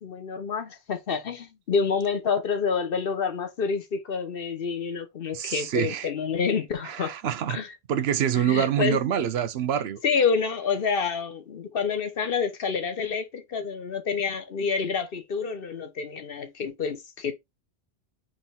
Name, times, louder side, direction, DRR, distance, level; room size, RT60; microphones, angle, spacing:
voice 1, 0.0-7.1 7.5-7.7 8.3-9.0 10.0-17.3, left 5 dB, 65° left, 1.1 m, -28 dB
voice 2, 5.3-6.1 6.8-7.6 7.9-10.0, right 9 dB, 85° right, 0.9 m, -26 dB
4.0 x 3.1 x 4.1 m
omnidirectional pair, 1.0 m